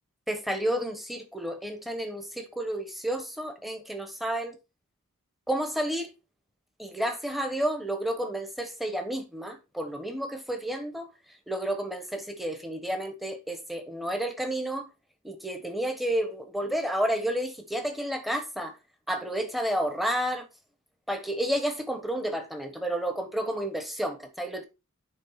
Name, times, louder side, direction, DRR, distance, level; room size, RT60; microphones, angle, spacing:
voice 1, 0.3-4.5 5.5-6.1 6.8-11.1 11.5-14.9 15.2-18.7 19.1-20.5 21.1-24.7, right 1 dB, ahead, 1.2 m, -31 dB
9.8 x 3.7 x 4.1 m
head